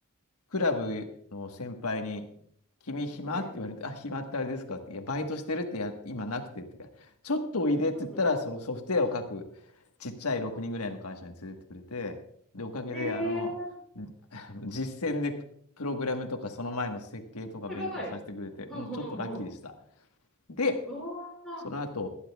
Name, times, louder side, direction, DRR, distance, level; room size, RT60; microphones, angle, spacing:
voice 1, 0.5-2.3 2.9-6.9 7.2-9.4 10.0-12.2 12.5-13.5 14.0-15.4 15.8-18.9 19.2-19.5 20.5-20.9 21.6-22.1, left 2 dB, 85° left, 5 dB, 1.4 m, -32 dB
voice 2, 12.9-13.7 17.7-18.1 18.7-19.5 20.8-21.7, equal, ahead, -6 dB, 5.7 m, -36 dB
22.5 x 10.0 x 2.3 m, 0.66 s
head